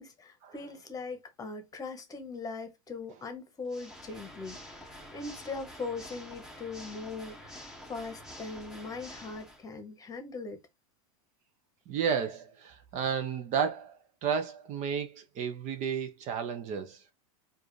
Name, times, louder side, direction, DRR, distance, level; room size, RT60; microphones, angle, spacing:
voice 1, 0.0-10.6, left 4 dB, 20° left, 1.1 m, -40 dB
Water / Mechanisms, 3.6-9.6, equal, 5° right, 1.0 m, -48 dB
voice 2, 11.9-17.1, right 7 dB, 45° right, 0.8 m, -32 dB
4.6 x 2.5 x 3.2 m
supercardioid pair, 120°, 17 cm